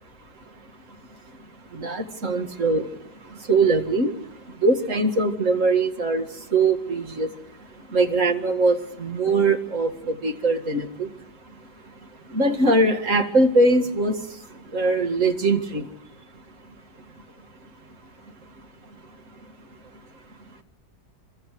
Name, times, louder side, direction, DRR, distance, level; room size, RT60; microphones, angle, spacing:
voice 1, 1.7-2.9 3.5-4.1 4.6-6.2 6.5-7.3 7.9-11.1 12.3-14.2 14.7-15.9, right 2 dB, 45° right, 4 dB, 2.2 m, -21 dB
26.5 x 23.0 x 5.0 m, 0.79 s
omnidirectional pair, 1.9 m